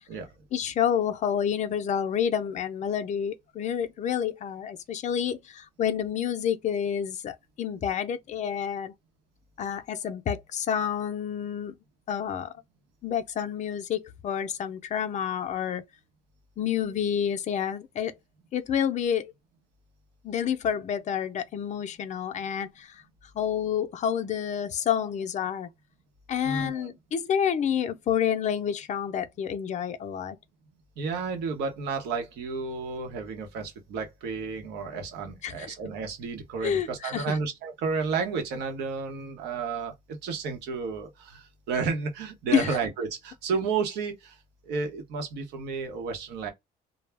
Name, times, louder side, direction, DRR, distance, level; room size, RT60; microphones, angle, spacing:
voice 1, 0.5-8.9 9.6-11.8 12.1-12.5 13.0-15.8 16.6-18.1 18.5-19.3 20.2-23.0 23.3-25.7 26.3-30.4 35.4-35.8 36.6-37.4 42.5-42.8, left 8 dB, 45° left, 0.5 m, -29 dB
voice 2, 26.4-26.9 31.0-44.4 44.6-46.5, right 5 dB, 85° right, 0.8 m, -32 dB
2.3 x 2.0 x 3.3 m
cardioid pair, 110°, 17 cm